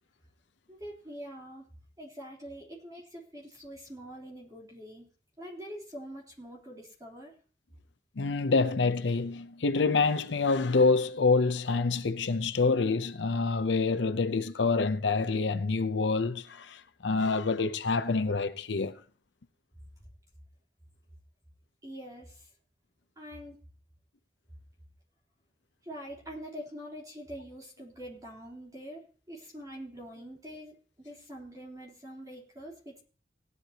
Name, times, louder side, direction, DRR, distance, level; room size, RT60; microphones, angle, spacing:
voice 1, 0.7-1.6 2.0-5.1 5.4-7.3 21.8-22.5 23.2-23.6 25.8-33.0, equal, 20° right, 3.5 m, -44 dB
voice 2, 8.2-19.0, left 4 dB, 85° left, 0.7 m, -27 dB
18.0 x 11.0 x 2.9 m
head